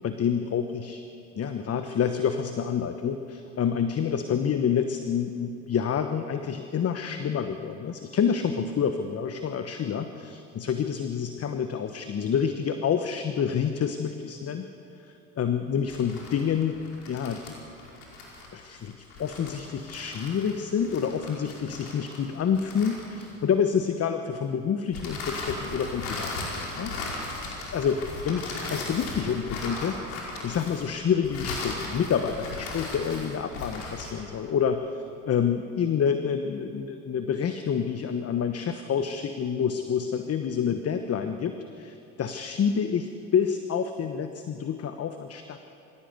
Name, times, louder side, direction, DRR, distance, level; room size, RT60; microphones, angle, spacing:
voice 1, 0.0-1.0 1.3-14.7 15.0-16.8 17.1-17.5 18.5-26.5 26.7-27.2 27.7-30.0 30.4-45.6, left 7 dB, 40° left, 8 dB, 1.2 m, -28 dB
sound 1, 15.8-23.6 24.9-34.2, left 2 dB, 80° left, 5.3 m, -37 dB
23.0 x 16.5 x 8.1 m, 2.8 s
hypercardioid pair, 70°, 39 cm